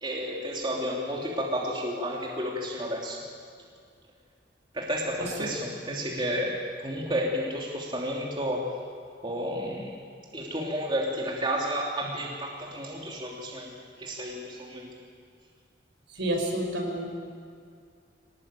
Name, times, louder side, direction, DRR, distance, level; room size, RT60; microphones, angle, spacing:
voice 1, 0.0-3.2 4.7-8.7 9.2-10.0 10.3-15.0, equal, 25° right, -3 dB, 3.1 m, -31 dB
voice 2, 16.1-17.1, right 1 dB, 70° right, 1 dB, 5.3 m, -29 dB
25.0 x 19.5 x 9.1 m, 2.3 s
head